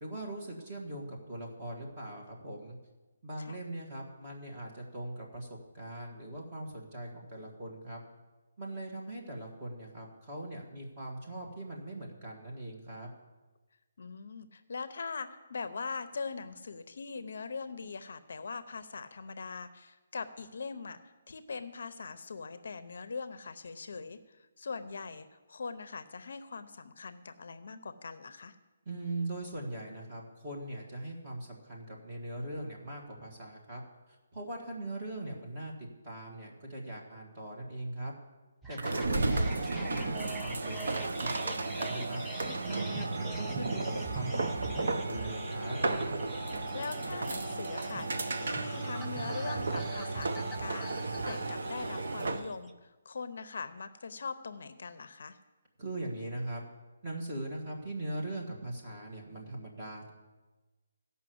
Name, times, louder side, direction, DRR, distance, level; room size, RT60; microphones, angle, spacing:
voice 1, 0.0-2.7 3.2-5.5 5.7-8.0 8.6-13.1 28.8-33.8 34.3-35.7 36.0-38.1 38.7-45.8 55.8-56.6 57.0-60.1, right 1 dB, 20° right, -2 dB, 1.6 m, -40 dB
voice 2, 14.0-28.6 39.1-39.3 46.7-48.1 48.4-55.4, left 4 dB, 55° left, 12 dB, 0.6 m, -41 dB
sound 1, 38.6-52.7, right 3 dB, ahead, 0.4 m, -45 dB
sound 2, 38.8-52.5, right 3 dB, 65° right, 0.8 m, -34 dB
14.5 x 5.6 x 7.8 m, 1.2 s
hypercardioid pair, 180°, 0 cm